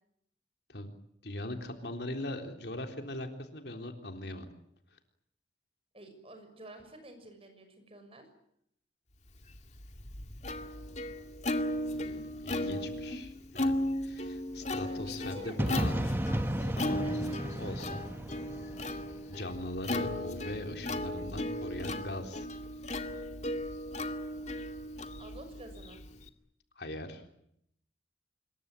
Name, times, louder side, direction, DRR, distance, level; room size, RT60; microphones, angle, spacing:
voice 1, 1.2-4.5 11.9-15.9 16.7-17.0 17.6-18.0 19.3-22.5 26.8-27.2, left 1 dB, 60° left, 5 dB, 3.7 m, -40 dB
voice 2, 5.9-8.3 14.8-15.9 16.3-17.4 17.6-18.0 25.2-26.0, right 1 dB, 30° right, 7 dB, 6.5 m, -50 dB
Plucked string instrument, 9.5-26.3, left 1 dB, 40° left, 2.1 m, -36 dB
sound 1, 15.6-19.4, equal, 10° right, 1.0 m, -33 dB
26.5 x 22.5 x 9.0 m, 0.73 s
head